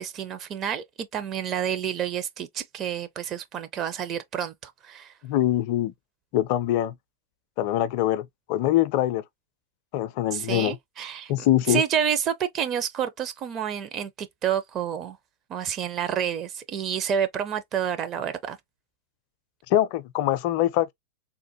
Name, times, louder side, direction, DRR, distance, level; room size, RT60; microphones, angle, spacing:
voice 1, 0.0-5.1 10.3-15.2 15.5-18.6, right 8 dB, 30° right, 0.6 m, -29 dB
voice 2, 5.2-5.9 6.3-6.9 7.6-9.2 9.9-10.8 11.3-11.8 19.7-20.9, left 13 dB, 45° left, 0.4 m, -23 dB
3.7 x 2.1 x 2.8 m
figure-of-eight pair, 90°, 0 cm